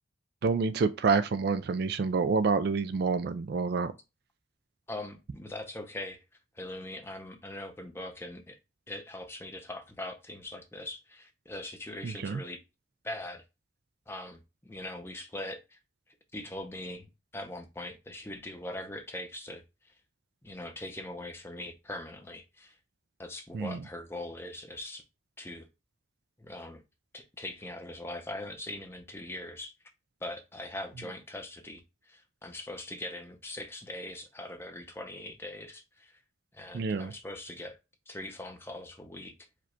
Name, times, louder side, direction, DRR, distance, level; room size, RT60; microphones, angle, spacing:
voice 1, 0.4-3.9 12.0-12.4 23.5-23.8 36.7-37.1, right 4 dB, 55° right, 0.3 m, -28 dB
voice 2, 4.9-6.2 6.5-8.6 8.9-12.6 13.0-13.4 14.1-15.8 16.3-19.9 20.4-22.8 23.2-25.0 25.4-25.7 26.4-26.8 27.1-29.7 30.2-36.2 36.5-37.8 38.1-39.3, left 1 dB, 10° left, 0.6 m, -41 dB
4.9 x 2.3 x 4.3 m
head